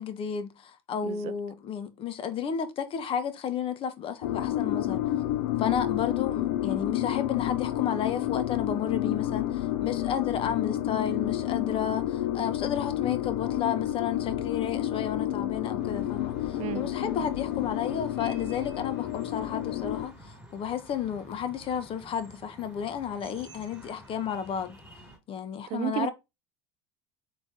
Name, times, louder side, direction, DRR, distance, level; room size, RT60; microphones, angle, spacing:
voice 1, 0.0-5.0 5.6-24.8 25.3-26.1, left 8 dB, 40° left, 0.9 m, -32 dB
sound 1, 4.2-20.1, left 13 dB, 75° left, 0.6 m, -30 dB
sound 2, 15.8-25.2, right 1 dB, 10° right, 2.7 m, -50 dB
voice 2, 25.7-26.1, right 15 dB, 50° right, 0.4 m, -32 dB
4.0 x 3.4 x 3.4 m
supercardioid pair, 95°, 14 cm